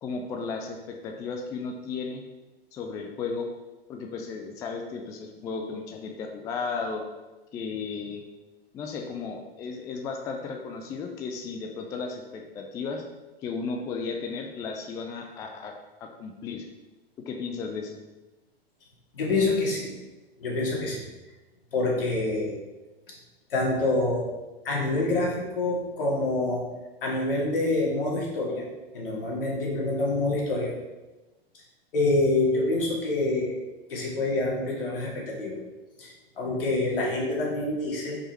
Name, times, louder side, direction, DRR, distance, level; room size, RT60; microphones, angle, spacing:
voice 1, 0.0-2.2 2.7-3.5 3.9-7.0 7.5-8.2 8.7-13.0 13.4-15.7 16.0-16.7 17.3-18.0, left 4 dB, 10° left, 3 dB, 0.3 m, -34 dB
voice 2, 19.1-19.9 20.4-21.0 21.7-22.5 23.5-24.2 24.6-26.6 27.0-28.7 28.9-30.7 31.9-33.6 33.9-35.6 36.0-38.2, left 2 dB, 65° left, -3 dB, 2.4 m, -26 dB
6.1 x 5.0 x 4.5 m, 1.1 s
figure-of-eight pair, 100°, 30 cm